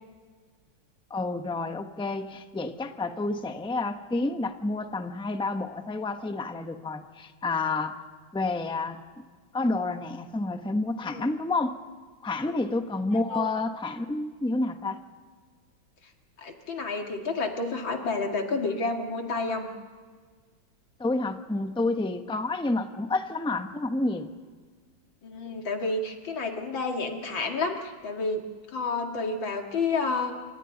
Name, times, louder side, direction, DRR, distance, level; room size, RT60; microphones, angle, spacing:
voice 1, 1.1-8.0 8.3-9.2 9.5-11.8 12.2-15.0 21.0-24.3, left 2 dB, 5° left, 7 dB, 0.4 m, -29 dB
voice 2, 13.1-13.5 16.4-19.7 25.2-30.3, left 3 dB, 70° left, 3 dB, 2.8 m, -30 dB
29.0 x 25.5 x 4.0 m, 1.5 s
omnidirectional pair, 2.2 m